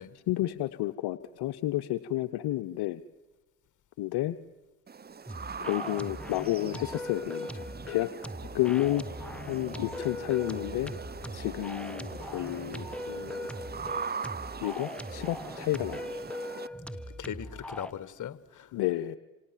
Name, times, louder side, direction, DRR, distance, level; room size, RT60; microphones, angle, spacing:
voice 1, 0.3-3.0 4.0-4.4 5.6-8.1 8.5-9.0 9.5-10.9 11.3-13.4 14.6-16.1 18.7-19.2, left 15 dB, 65° left, 0.9 m, -31 dB
sound 1, 4.9-16.7, right 5 dB, 20° right, 0.8 m, -41 dB
sound 2, 5.3-17.9, left 1 dB, 5° left, 1.4 m, -40 dB
sound 3, 7.8-14.2, left 6 dB, 20° left, 5.1 m, -52 dB
voice 2, 8.5-8.8 17.1-18.7, left 9 dB, 45° left, 1.6 m, -40 dB
28.0 x 26.5 x 7.5 m
hypercardioid pair, 60°, 43 cm